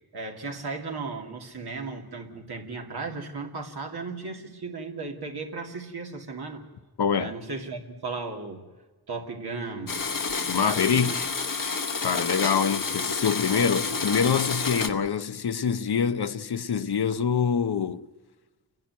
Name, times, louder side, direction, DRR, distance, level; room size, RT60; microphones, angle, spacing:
voice 1, 0.1-6.7 7.2-8.7 9.1-11.1 13.5-13.7 14.7-15.0, right 3 dB, 85° right, 2.4 m, -36 dB
voice 2, 7.0-7.3 10.5-11.2 12.0-18.1, left 7 dB, 85° left, 0.8 m, -25 dB
Domestic sounds home sounds, 9.9-14.9, left 4 dB, 60° left, 1.1 m, -29 dB
29.0 x 10.5 x 9.4 m
wide cardioid pair, 70°, 38 cm